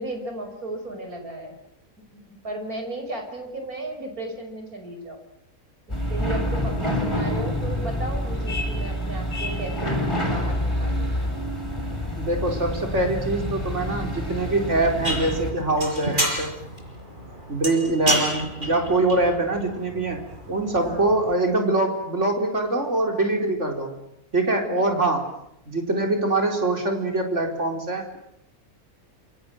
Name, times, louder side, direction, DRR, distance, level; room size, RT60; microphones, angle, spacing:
voice 1, 0.0-1.6 2.1-5.2 6.1-11.1 20.8-21.1 24.7-25.1, right 1 dB, 75° right, 5 dB, 6.1 m, -35 dB
sound 1, 5.9-15.5, equal, 20° left, 7.1 m, -27 dB
voice 2, 12.2-16.5 17.5-20.2 20.5-23.9 24.3-25.3 25.7-28.2, right 2 dB, 50° right, 3 dB, 4.7 m, -24 dB
sound 2, 15.0-21.3, equal, 35° right, 6.2 m, -30 dB
27.5 x 25.5 x 7.9 m, 0.78 s
omnidirectional pair, 1.6 m